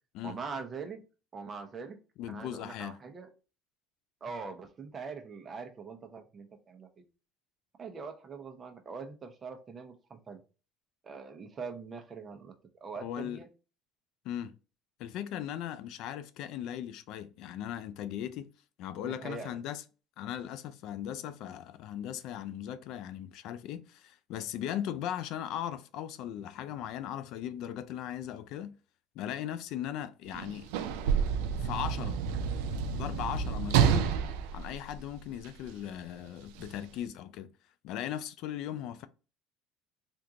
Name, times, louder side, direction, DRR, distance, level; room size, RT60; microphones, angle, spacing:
voice 1, 0.2-1.0 1.3-2.0 2.3-3.3 4.2-6.9 7.8-10.4 11.0-13.5 19.0-19.6, right 5 dB, 25° right, 0.7 m, -42 dB
voice 2, 2.2-3.0 13.0-13.4 14.2-14.5 15.0-18.5 18.8-19.8 20.2-28.7 29.2-30.7 31.6-32.2 32.9-34.1 34.5-37.5 37.8-39.1, left 10 dB, 65° left, 0.3 m, -38 dB
Sliding door / Slam, 30.3-35.7 36.6-36.7, right 7 dB, 90° right, 0.4 m, -29 dB
3.6 x 2.4 x 2.7 m
cardioid pair, 125°, 0 cm